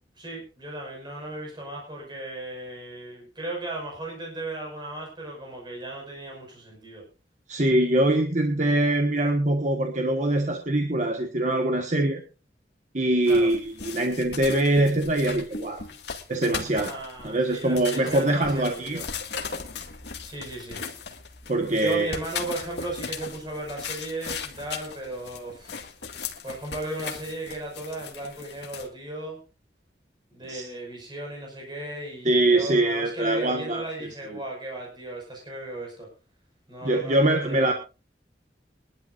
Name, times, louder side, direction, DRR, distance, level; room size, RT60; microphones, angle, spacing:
voice 1, 0.2-7.1 13.3-13.5 16.6-19.1 20.2-20.8 21.8-25.7 26.4-29.4 30.3-36.1 36.7-37.7, right 1 dB, 25° right, 0 dB, 5.7 m, -36 dB
voice 2, 7.5-12.2 12.9-15.8 16.3-16.9 17.2-19.0 21.5-22.1 30.5-30.7 32.2-33.8 34.3-34.4 36.8-37.7, right 1 dB, 45° right, 3 dB, 1.4 m, -23 dB
sound 1, 13.2-28.9, left 6 dB, 75° left, 2.1 m, -38 dB
22.0 x 12.0 x 2.6 m, 0.31 s
head